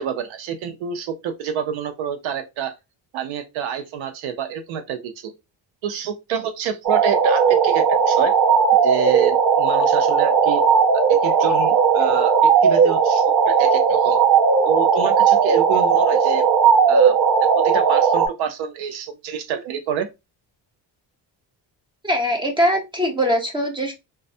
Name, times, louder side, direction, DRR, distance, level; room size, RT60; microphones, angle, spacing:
voice 1, 0.0-2.7 3.1-5.3 5.8-8.3 8.8-10.6 11.1-14.2 14.7-16.5 16.9-17.2 17.5-20.1, right 8 dB, 85° right, 0.7 m, -28 dB
sound 1, 6.8-18.3, right 6 dB, 45° right, 0.8 m, -17 dB
voice 2, 22.0-23.9, equal, 10° right, 0.7 m, -21 dB
2.3 x 2.0 x 2.6 m
cardioid pair, 105°, 45 cm